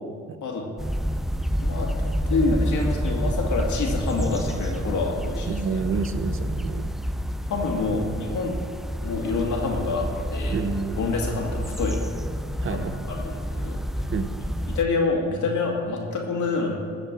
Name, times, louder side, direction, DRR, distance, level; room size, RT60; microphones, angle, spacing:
sound 1, 0.8-14.8, equal, ahead, 0.4 m, -29 dB
voice 1, 1.6-5.6 7.5-8.6 9.0-10.6 11.0-12.0 12.7-13.8 14.7-16.7, left 3 dB, 75° left, 0 dB, 2.3 m, -27 dB
voice 2, 5.5-6.9 10.5-11.0 12.6-13.0 14.1-14.3, right 5 dB, 45° right, 9 dB, 0.8 m, -28 dB
15.5 x 5.2 x 7.4 m, 2.5 s
cardioid pair, 90°, 30 cm